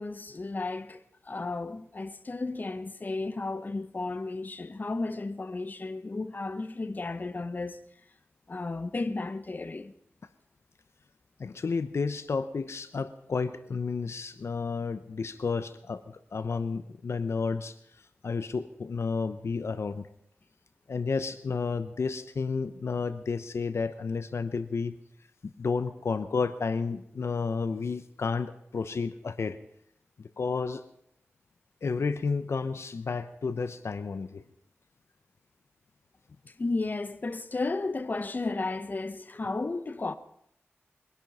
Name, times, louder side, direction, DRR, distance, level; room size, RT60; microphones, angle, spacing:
voice 1, 0.0-7.8 8.5-9.9 36.6-40.1, left 3 dB, 40° left, 0.9 m, -33 dB
voice 2, 11.4-17.7 18.2-20.1 20.9-25.0 25.6-29.6 30.2-30.8 31.8-34.4, left 4 dB, 75° left, 0.8 m, -31 dB
22.5 x 11.0 x 5.5 m
wide cardioid pair, 85°, 5 cm